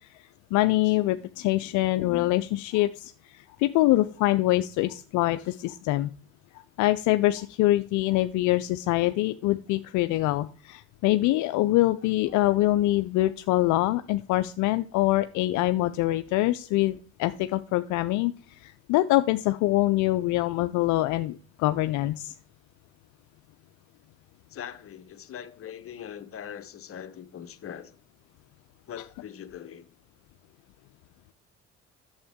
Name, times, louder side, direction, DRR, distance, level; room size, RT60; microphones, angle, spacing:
voice 1, 0.5-6.1 6.8-22.3, left 16 dB, 75° left, 0.5 m, -24 dB
voice 2, 1.6-2.0 24.5-27.9 28.9-29.9, left 9 dB, 45° left, 1.0 m, -41 dB
8.7 x 7.1 x 3.6 m
supercardioid pair, 75°, 30 cm